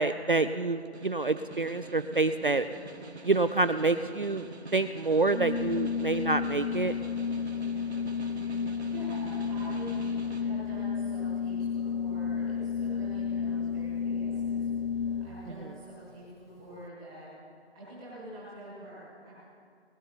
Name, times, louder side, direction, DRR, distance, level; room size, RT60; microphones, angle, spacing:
voice 1, 0.0-2.7 3.2-4.5 4.7-6.9, right 3 dB, 50° right, 11 dB, 0.4 m, -27 dB
Snare drum, 0.8-10.5, right 2 dB, 75° right, 2.0 m, -45 dB
Organ, 5.3-15.6, left 6 dB, 60° left, 0.6 m, -32 dB
voice 2, 8.6-17.3 17.7-19.3, right 1 dB, 5° right, -10 dB, 1.5 m, -46 dB
20.5 x 12.5 x 4.1 m, 2.3 s
figure-of-eight pair, 175°, 33 cm